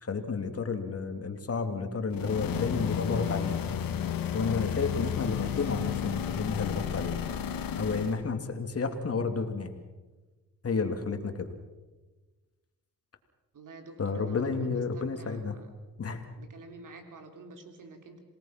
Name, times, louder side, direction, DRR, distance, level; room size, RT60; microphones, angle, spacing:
voice 1, 0.0-3.6 4.3-7.2 7.8-9.8 10.6-11.5 14.0-15.6 16.0-16.2, left 4 dB, 45° left, 6 dB, 2.8 m, -31 dB
sound 1, 2.1-8.2, left 8 dB, 80° left, 2.0 m, -32 dB
voice 2, 13.5-15.4 16.4-18.2, right 3 dB, 65° right, 5 dB, 3.7 m, -48 dB
27.5 x 18.5 x 6.0 m, 1.2 s
cardioid pair, 70°, 34 cm